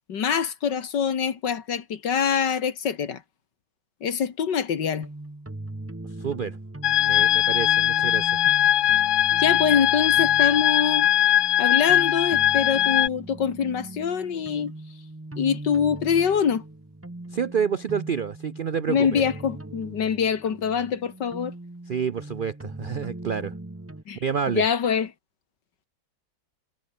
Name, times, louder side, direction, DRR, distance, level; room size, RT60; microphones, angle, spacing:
voice 1, 0.1-3.2 4.0-5.1 9.4-11.1 11.6-14.7 15.4-16.6 18.9-21.5 24.1-24.2 24.5-25.1, left 7 dB, 85° left, 2.4 m, -24 dB
sound 1, 4.8-24.0, right 2 dB, 10° right, 0.8 m, -40 dB
voice 2, 6.2-6.6 7.0-8.4 17.3-19.2 21.9-23.5 24.2-24.6, right 7 dB, 85° right, 0.4 m, -28 dB
sound 2, 6.8-13.1, left 12 dB, 70° left, 1.3 m, -20 dB
omnidirectional pair, 1.8 m